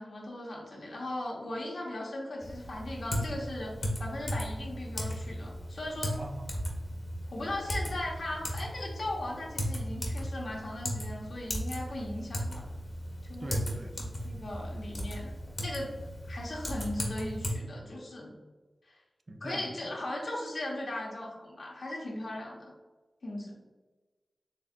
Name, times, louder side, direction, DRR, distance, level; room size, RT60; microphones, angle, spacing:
voice 1, 0.0-3.7 4.0-6.2 7.3-12.7 13.3-13.6 14.0-15.9 16.3-18.3 18.9-19.0 19.4-22.7 23.2-23.5, left 1 dB, 75° left, -2 dB, 1.1 m, -38 dB
Typing, 2.4-17.5, equal, 50° left, 1.2 m, -36 dB
voice 2, 6.2-6.8 13.4-14.1 19.3-19.7, right 1 dB, 50° right, 4 dB, 0.6 m, -42 dB
4.5 x 3.3 x 2.5 m, 1.3 s
cardioid pair, 40°, 0 cm